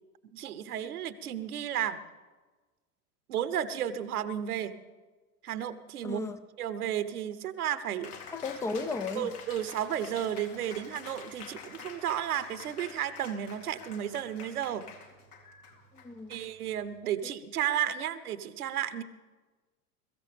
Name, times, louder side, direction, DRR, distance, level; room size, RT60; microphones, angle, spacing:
voice 1, 0.3-2.0 3.3-4.7 5.4-6.2 6.6-8.2 9.1-14.8 16.3-19.0, right 10 dB, 70° right, 1.0 m, -33 dB
voice 2, 6.0-6.4 8.3-9.4 15.9-16.4 17.2-17.3, left 3 dB, 5° left, 0.4 m, -35 dB
Cheering, 8.0-17.0, left 5 dB, 70° left, 2.4 m, -48 dB
22.0 x 14.5 x 3.5 m
figure-of-eight pair, 85°, 47 cm